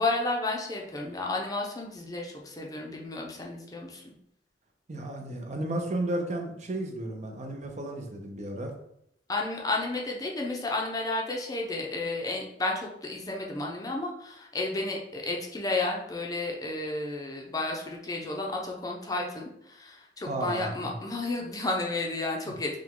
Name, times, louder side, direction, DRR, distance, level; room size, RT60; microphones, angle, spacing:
voice 1, 0.0-4.0 9.3-22.8, left 2 dB, 20° left, -1 dB, 0.6 m, -32 dB
voice 2, 4.9-8.7 20.3-20.9, right 1 dB, 40° right, 2 dB, 0.6 m, -33 dB
4.9 x 2.3 x 3.7 m, 0.75 s
head